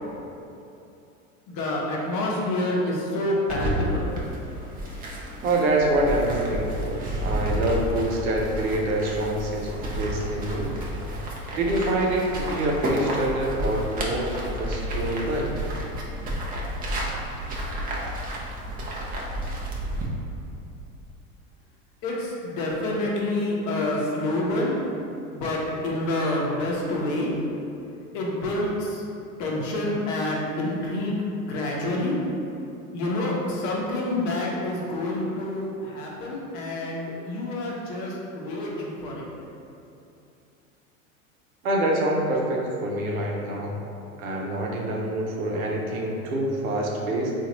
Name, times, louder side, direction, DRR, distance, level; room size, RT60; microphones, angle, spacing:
voice 1, 1.5-4.1 22.0-24.8 25.3-27.3 28.1-29.0 29.4-32.2 32.9-39.3, left 1 dB, 45° left, -3 dB, 0.8 m, -27 dB
sound 1, 3.5-20.1, right 1 dB, 20° right, 0.6 m, -31 dB
voice 2, 5.4-10.7 11.5-15.6 41.6-43.8 44.2-47.3, right 1 dB, 80° right, -2 dB, 0.8 m, -26 dB
3.8 x 2.5 x 2.9 m, 2.7 s
hypercardioid pair, 95°, 41 cm